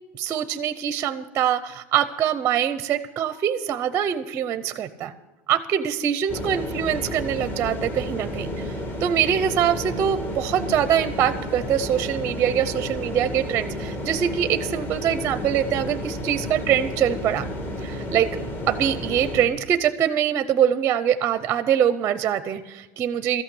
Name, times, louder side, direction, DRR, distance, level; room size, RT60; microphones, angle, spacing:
voice 1, 0.1-5.1 5.5-17.5 17.8-18.3 18.7-23.4, right 9 dB, 30° right, 13 dB, 0.6 m, -24 dB
sound 1, 6.3-19.5, left 1 dB, 30° left, 2.2 m, -31 dB
14.0 x 8.9 x 8.3 m, 1.1 s
supercardioid pair, 145°, 7 cm